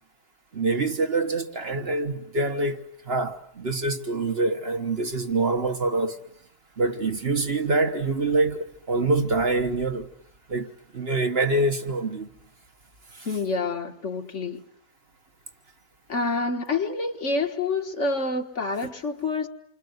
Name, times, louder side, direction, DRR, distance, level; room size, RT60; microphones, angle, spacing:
voice 1, 0.5-6.2 6.8-10.1 10.5-12.3 13.1-13.3, right 2 dB, 45° right, 1.4 m, -25 dB
voice 2, 13.3-14.6 16.1-19.5, left 3 dB, 50° left, 1.8 m, -27 dB
28.5 x 25.0 x 8.0 m
omnidirectional pair, 1.6 m